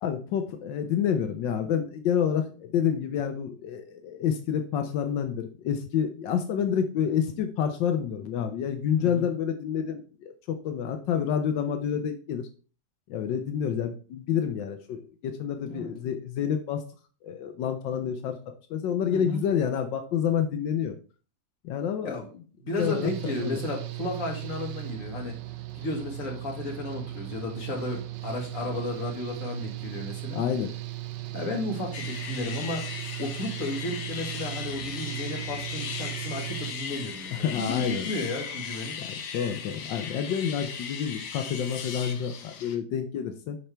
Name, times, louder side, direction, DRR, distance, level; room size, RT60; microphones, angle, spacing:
voice 1, 0.0-12.5 13.1-16.8 17.2-18.4 18.7-20.9 21.6-22.2 22.8-23.6 30.3-30.7 37.3-38.1 39.0-43.6, left 8 dB, 85° left, 6 dB, 1.5 m, -28 dB
voice 2, 9.0-9.3 15.6-15.9 19.1-19.4 22.0-22.3 22.6-25.4 25.7-30.4 31.3-32.9 33.2-39.0, left 2 dB, 50° left, 0 dB, 2.2 m, -33 dB
Engine / Mechanical fan, 22.8-36.7, right 17 dB, 75° right, 1.3 m, -37 dB
sound 1, 31.9-42.8, left 6 dB, 70° left, 1.5 m, -37 dB
10.5 x 4.4 x 3.4 m, 0.38 s
omnidirectional pair, 1.9 m